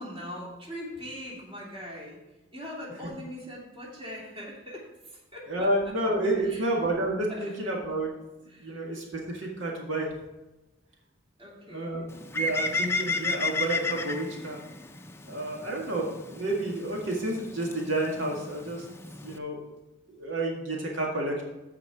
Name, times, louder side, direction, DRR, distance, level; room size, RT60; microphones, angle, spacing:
voice 1, 0.0-5.9 6.4-6.7 7.3-7.6 8.5-9.0 11.4-12.1, equal, 25° right, -3 dB, 2.8 m, -42 dB
voice 2, 5.5-8.1 8.6-10.1 11.7-12.1 12.3-14.6 15.3-18.9 19.2-19.6 20.1-21.4, right 1 dB, 80° right, -2 dB, 2.0 m, -30 dB
Bird, 12.1-19.4, left 3 dB, 15° left, 0.5 m, -34 dB
14.5 x 4.9 x 4.8 m, 1.0 s
head